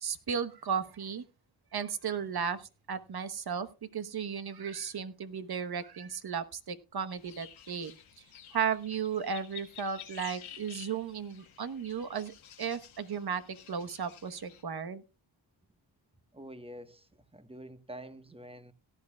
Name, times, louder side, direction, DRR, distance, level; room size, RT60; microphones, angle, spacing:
voice 1, 0.0-1.2 1.7-3.7 3.9-7.9 8.5-15.0, right 7 dB, 50° right, 1.1 m, -35 dB
sound 1, 7.1-14.6, left 9 dB, 85° left, 1.7 m, -51 dB
voice 2, 16.3-18.7, right 1 dB, 10° right, 1.2 m, -47 dB
17.5 x 11.0 x 2.3 m
cardioid pair, 65°, 47 cm